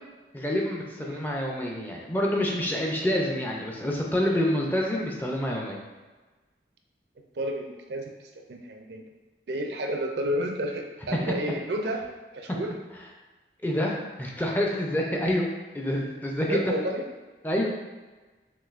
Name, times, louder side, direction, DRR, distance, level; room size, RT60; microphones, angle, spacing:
voice 1, 0.3-5.8 13.6-15.5 15.7-16.6 17.4-17.8, left 1 dB, 10° left, -1 dB, 0.4 m, -27 dB
voice 2, 7.3-9.0 9.5-12.1 12.3-12.8 16.5-17.0, right 1 dB, 70° right, 2 dB, 0.5 m, -31 dB
6.1 x 2.6 x 2.5 m, 1.2 s
head